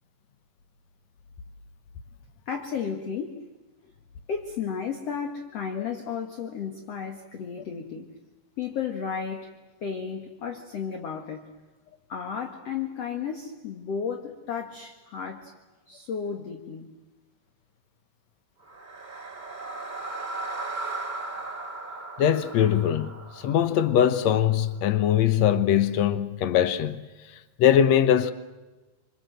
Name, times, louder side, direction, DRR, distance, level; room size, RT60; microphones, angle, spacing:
voice 1, 2.5-3.4 4.3-8.1 8.6-9.5 9.8-11.5 12.1-15.5 15.9-16.9, left 6 dB, 50° left, 2.3 m, -33 dB
sound 1, 18.6-24.8, right 2 dB, 20° right, 1.2 m, -37 dB
voice 2, 22.2-27.1 27.6-28.3, left 10 dB, 85° left, 1.5 m, -22 dB
28.5 x 27.0 x 7.8 m
omnidirectional pair, 4.8 m